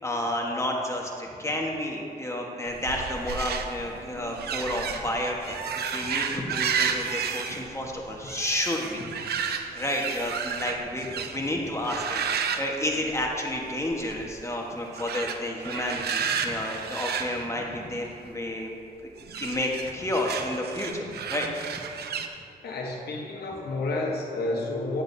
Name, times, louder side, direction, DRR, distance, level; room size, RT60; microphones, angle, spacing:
voice 1, 0.0-9.1 9.7-18.7 19.4-21.5, left 1 dB, 15° left, 0 dB, 1.2 m, -31 dB
sound 1, 2.7-11.5 11.8-13.6 13.8-14.2 14.9-18.3 19.2-22.3, right 6 dB, 85° right, 0.5 m, -32 dB
voice 2, 22.6-25.0, left 2 dB, 90° left, -1 dB, 0.9 m, -30 dB
9.0 x 8.8 x 2.7 m, 2.5 s
cardioid pair, 70°, 16 cm